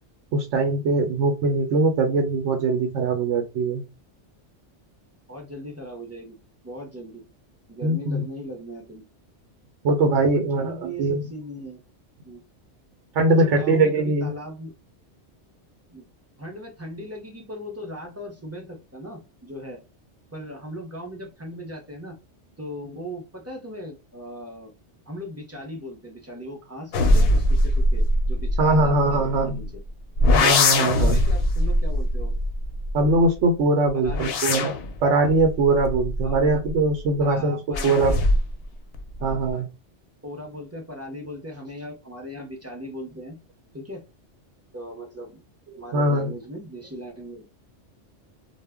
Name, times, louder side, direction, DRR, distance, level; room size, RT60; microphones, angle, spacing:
voice 1, 0.3-3.9 7.8-8.3 9.8-11.2 13.1-14.3 28.6-29.6 30.4-31.2 32.9-34.7 35.0-37.6 37.8-38.1 39.2-39.7 45.9-46.3, right 2 dB, 80° right, 4 dB, 0.9 m, -21 dB
voice 2, 5.3-6.3 6.6-7.2 7.7-9.0 10.5-11.8 12.2-12.4 13.4-14.7 15.9-16.1 16.4-19.8 20.3-22.2 22.6-24.7 25.1-29.7 31.0-32.3 33.9-34.4 36.2-36.5 37.2-38.3 39.2-39.4 40.2-43.4 43.7-44.0 44.7-45.4 45.8-47.5, equal, 15° right, 1 dB, 0.5 m, -38 dB
sound 1, 26.9-29.6 30.2-33.3 33.9-36.9 37.7-38.6 38.9-39.5, left 1 dB, 65° left, 0.7 m, -22 dB
2.1 x 2.0 x 3.4 m, 0.29 s
omnidirectional pair, 1.2 m